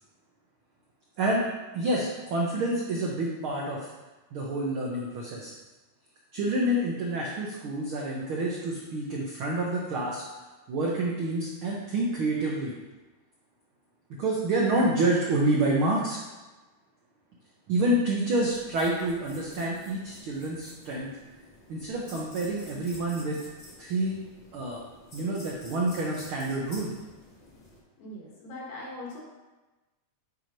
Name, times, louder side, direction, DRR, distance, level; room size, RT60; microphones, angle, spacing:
voice 1, 1.7-3.9 4.3-5.5 6.3-10.2 10.7-12.7 14.2-16.2 17.7-21.1 21.7-23.4 23.8-24.1 24.5-24.8 25.1-26.9, right 1 dB, 80° right, -3 dB, 1.1 m, -28 dB
sound 1, 18.4-27.8, left 1 dB, 30° left, 1.2 m, -50 dB
voice 2, 28.0-29.2, left 2 dB, 65° left, -4 dB, 2.8 m, -40 dB
8.8 x 3.1 x 5.2 m, 1.1 s
omnidirectional pair, 3.6 m